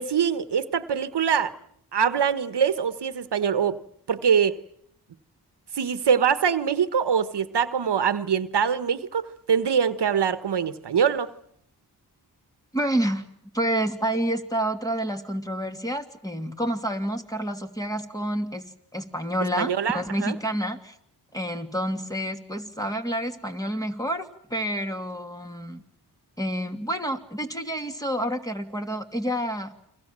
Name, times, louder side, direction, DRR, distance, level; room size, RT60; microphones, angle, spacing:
voice 1, 0.0-1.5 1.9-3.8 4.1-4.6 5.7-11.3 19.6-20.3, right 7 dB, 80° right, 12 dB, 1.3 m, -23 dB
voice 2, 12.7-13.3 13.5-18.6 18.9-20.9 21.3-25.8 26.4-29.7, right 1 dB, 10° left, 5 dB, 2.8 m, -29 dB
29.5 x 22.5 x 7.5 m, 0.69 s
wide cardioid pair, 70°, 40 cm